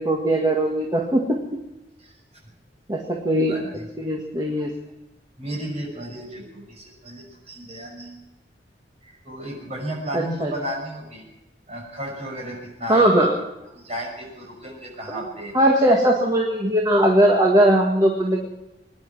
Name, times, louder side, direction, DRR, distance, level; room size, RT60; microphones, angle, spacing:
voice 1, 0.0-1.4 2.9-3.5 4.0-4.7 10.1-10.5 12.9-13.3 15.1-15.2 15.5-18.4, right 1 dB, 25° right, 0 dB, 1.7 m, -19 dB
voice 2, 3.4-3.9 5.4-8.2 9.0-11.2 11.7-13.3 13.8-15.6, equal, 40° right, 0 dB, 6.0 m, -33 dB
22.5 x 10.5 x 6.0 m, 0.97 s
head